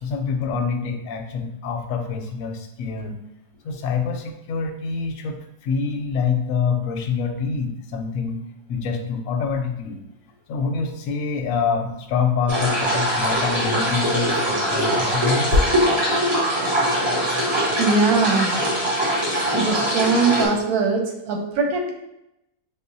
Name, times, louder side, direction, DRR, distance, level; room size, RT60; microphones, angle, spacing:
voice 1, 0.0-3.2 3.6-5.4 5.6-8.4 8.7-10.0 10.5-15.6, left 5 dB, 70° left, 5 dB, 0.9 m, -25 dB
sound 1, 12.5-20.5, equal, 25° right, 0.7 m, -22 dB
voice 2, 17.8-18.6 19.5-21.9, right 4 dB, 85° right, 2 dB, 1.2 m, -21 dB
5.8 x 2.1 x 2.6 m, 0.86 s
omnidirectional pair, 1.6 m